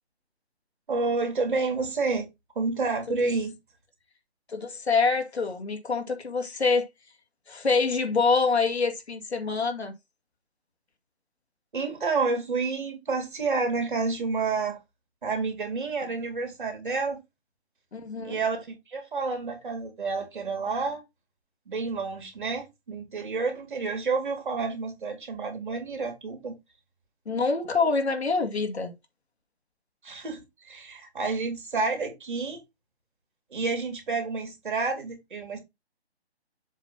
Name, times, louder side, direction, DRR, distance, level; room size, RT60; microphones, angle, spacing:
voice 1, 0.9-2.3 2.6-3.5 11.7-14.8 15.2-17.2 18.2-21.0 21.7-26.5 30.0-32.6 33.5-35.6, right 4 dB, 50° right, 2.5 m, -29 dB
voice 2, 4.5-6.9 7.5-9.9 17.9-18.4 27.3-28.9, left 4 dB, 75° left, 2.2 m, -25 dB
7.4 x 3.3 x 5.5 m
hypercardioid pair, 170°, 33 cm